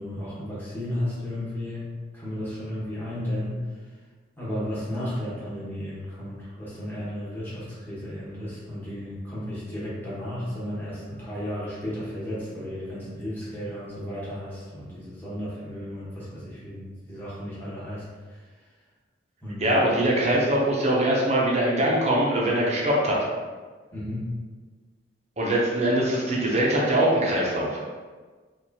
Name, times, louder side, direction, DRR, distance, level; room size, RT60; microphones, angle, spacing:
voice 1, 0.0-3.6 4.4-18.4 19.4-19.7 20.3-20.4 23.9-24.3, left 1 dB, 10° left, -9 dB, 1.2 m, -34 dB
voice 2, 19.6-23.2 25.4-27.8, right 1 dB, 35° right, -4 dB, 0.7 m, -22 dB
4.4 x 2.5 x 2.8 m, 1.4 s
head